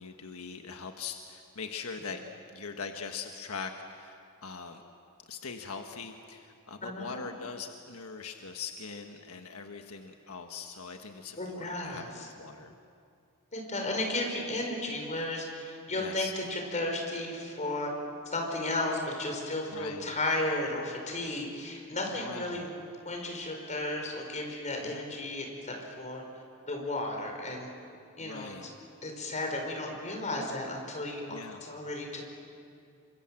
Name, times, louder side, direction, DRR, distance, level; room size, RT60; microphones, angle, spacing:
voice 1, 0.0-2.2 2.5-4.8 5.3-12.7 16.0-16.3 19.7-20.1 22.2-22.7 24.8-25.1 28.2-28.7 31.3-31.6, left 5 dB, 85° left, 4 dB, 1.4 m, -42 dB
voice 2, 6.8-7.3 11.4-12.3 13.5-17.9 18.3-22.8 23.1-26.2 26.6-27.7 28.2-28.5 29.0-32.2, left 2 dB, 35° left, 2 dB, 5.1 m, -34 dB
28.5 x 25.0 x 7.7 m, 2.5 s
head